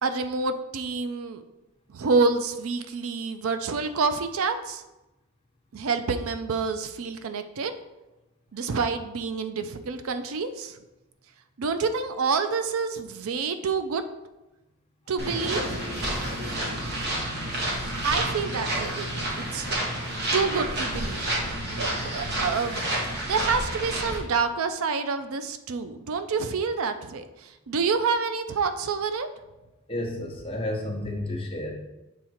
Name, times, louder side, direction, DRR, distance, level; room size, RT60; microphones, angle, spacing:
voice 1, 0.0-1.4 1.9-4.8 5.7-7.7 8.5-10.8 11.6-14.0 15.1-16.2 18.0-19.1 19.4-19.7 20.3-21.3 21.8-22.8 23.3-29.3, right 4 dB, 70° right, 9 dB, 0.5 m, -28 dB
sound 1, 15.2-24.2, right 1 dB, 45° right, 1.3 m, -29 dB
voice 2, 29.9-31.7, left 1 dB, 25° left, 0 dB, 0.9 m, -31 dB
7.2 x 3.6 x 4.3 m, 0.99 s
head